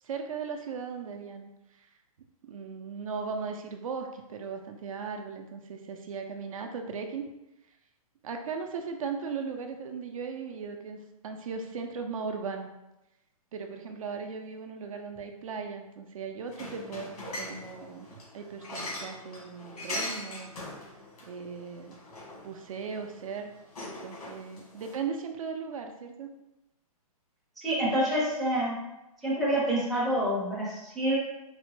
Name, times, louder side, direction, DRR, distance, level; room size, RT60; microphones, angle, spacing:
voice 1, 0.0-1.9 2.4-7.3 8.2-12.7 13.5-20.5 21.2-21.9 22.4-23.5 23.8-26.3, right 5 dB, 65° right, 5 dB, 0.5 m, -37 dB
sound 1, 16.5-25.0, left 1 dB, 90° left, 1.3 m, -41 dB
voice 2, 27.6-28.8 29.2-31.2, right 1 dB, ahead, -8 dB, 0.5 m, -27 dB
3.8 x 2.1 x 3.0 m, 0.94 s
hypercardioid pair, 160°, 19 cm